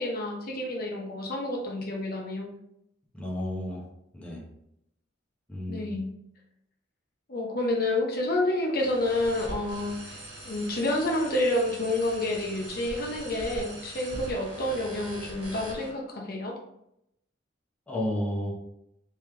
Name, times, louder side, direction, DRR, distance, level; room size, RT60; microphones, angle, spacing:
voice 1, 0.0-2.5 5.7-6.1 7.3-10.2 10.5-16.5, left 1 dB, 50° left, 0 dB, 0.8 m, -29 dB
voice 2, 3.1-3.9 4.1-4.4 5.5-5.9 17.9-18.5, left 1 dB, 5° left, -4 dB, 0.8 m, -31 dB
sound 1, 8.8-15.9, right 1 dB, 60° right, 1.2 m, -42 dB
3.4 x 3.3 x 3.3 m, 0.78 s
head